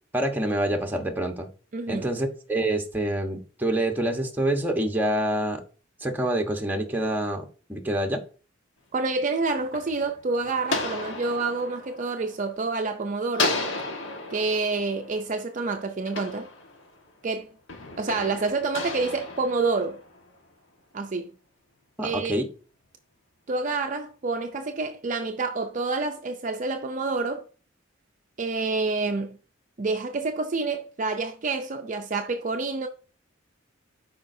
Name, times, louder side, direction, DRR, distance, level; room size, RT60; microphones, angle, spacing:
voice 1, 0.1-1.5 1.9-5.6 6.0-7.4 7.7-8.2 22.0-22.5, right 1 dB, 10° right, 1.1 m, -26 dB
voice 2, 1.7-2.1 8.9-13.5 14.3-16.5 17.2-17.5 18.0-20.0 20.9-21.3 22.0-22.3 23.5-27.4 28.4-29.4 29.8-32.9, right 3 dB, 40° right, 0.5 m, -28 dB
sound 1, 9.2-12.9 13.3-17.1 17.7-20.4, left 2 dB, 70° left, 1.5 m, -34 dB
12.0 x 4.9 x 2.7 m
head